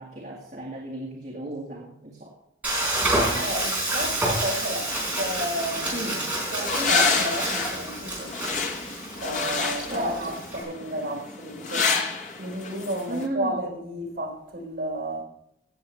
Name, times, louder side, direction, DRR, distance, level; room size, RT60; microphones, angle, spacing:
voice 1, 0.0-2.4 5.9-6.3 9.6-10.3 13.1-13.6, right 1 dB, 45° right, 1.9 m, -35 dB
Frying (food), 2.6-10.6, right 1 dB, 10° right, 4.2 m, -29 dB
voice 2, 3.4-6.0 6.3-8.3 9.1-11.9 12.4-15.2, equal, 65° right, 3.9 m, -32 dB
sound 1, 4.9-13.2, left 4 dB, 45° left, 1.3 m, -29 dB
17.0 x 7.7 x 3.3 m
head